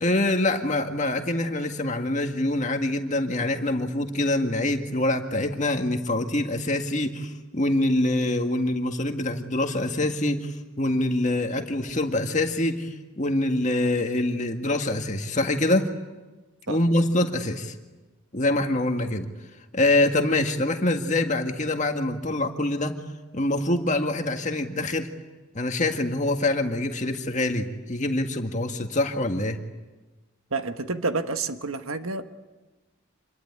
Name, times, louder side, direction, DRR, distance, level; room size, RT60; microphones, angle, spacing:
voice 1, 0.0-12.9 13.2-15.9 16.7-17.7 18.3-19.3 19.7-23.0 23.3-25.1 25.5-29.6, left 1 dB, 35° left, 5 dB, 1.8 m, -25 dB
voice 2, 30.5-32.2, right 3 dB, 75° right, 8 dB, 1.5 m, -29 dB
27.0 x 21.5 x 9.7 m, 1.2 s
head